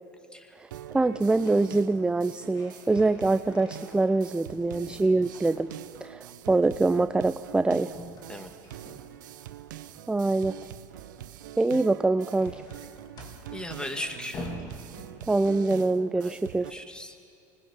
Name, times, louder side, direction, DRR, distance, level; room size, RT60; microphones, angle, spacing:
sound 1, 0.7-16.7, right 12 dB, 85° right, 0.7 m, -44 dB
voice 1, 0.9-5.7 6.0-7.9 10.1-10.5 11.6-12.6 15.3-16.7, right 3 dB, 10° right, 12 dB, 0.5 m, -24 dB
sound 2, 1.1-1.7 2.1-4.5 4.9-6.1 7.9-9.5 11.5-15.7, left 1 dB, 45° left, 3.0 m, -46 dB
voice 2, 13.5-14.5 16.2-17.2, left 1 dB, 10° left, 6 dB, 1.9 m, -38 dB
24.5 x 20.5 x 5.4 m, 2.9 s
hypercardioid pair, 90°, 10 cm